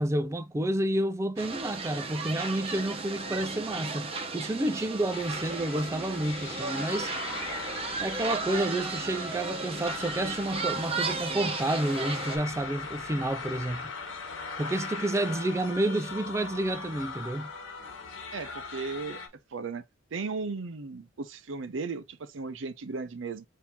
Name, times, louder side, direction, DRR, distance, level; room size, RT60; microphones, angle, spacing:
voice 1, 0.0-7.1 8.0-13.9 14.6-17.5, right 1 dB, 15° right, 0.3 m, -30 dB
sound 1, 1.4-12.4, right 4 dB, 30° right, 0.8 m, -35 dB
sound 2, 5.1-19.3, left 4 dB, 75° left, 1.4 m, -40 dB
voice 2, 18.3-19.2 19.5-19.8 20.1-23.4, right 4 dB, 70° right, 0.6 m, -36 dB
4.4 x 2.7 x 3.4 m
head